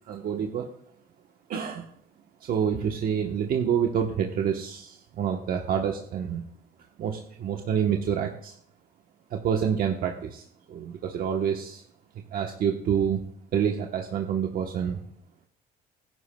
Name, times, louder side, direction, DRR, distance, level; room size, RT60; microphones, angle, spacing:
voice 1, 0.1-0.7 1.5-1.9 2.4-6.4 7.0-8.5 9.3-11.8 12.3-13.2 13.5-15.1, right 8 dB, 60° right, 2 dB, 1.1 m, -27 dB
18.5 x 11.0 x 2.3 m, 0.67 s
cardioid pair, 110°, 17 cm